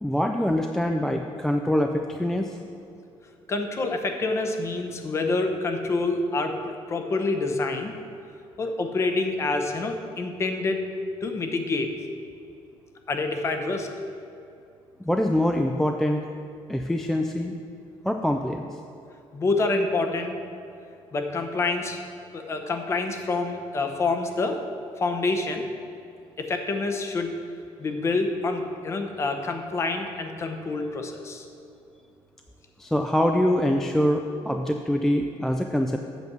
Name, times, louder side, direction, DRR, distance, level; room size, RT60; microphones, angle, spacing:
voice 1, 0.0-2.6 15.0-16.2 16.7-17.6 18.0-18.7 32.8-36.0, left 1 dB, 5° left, 3 dB, 0.3 m, -24 dB
voice 2, 3.5-7.9 8.6-10.8 11.2-11.9 13.1-13.9 19.3-20.4 21.1-22.0 22.3-24.6 25.0-25.6 26.4-27.3 27.8-31.5, left 3 dB, 25° left, 5 dB, 0.8 m, -27 dB
8.2 x 6.9 x 6.0 m, 2.5 s
cardioid pair, 175°, 11 cm